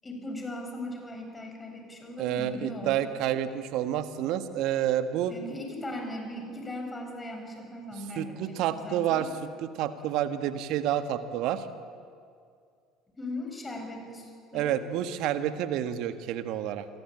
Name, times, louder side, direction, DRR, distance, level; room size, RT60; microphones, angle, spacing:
voice 1, 0.0-3.0 5.3-9.3 13.2-14.7, left 1 dB, 20° left, 3 dB, 7.6 m, -38 dB
voice 2, 2.2-5.3 8.2-9.3 9.6-11.7 14.5-16.9, right 11 dB, 55° right, 10 dB, 1.7 m, -29 dB
27.0 x 23.5 x 8.7 m, 2.2 s
figure-of-eight pair, 60°, 0 cm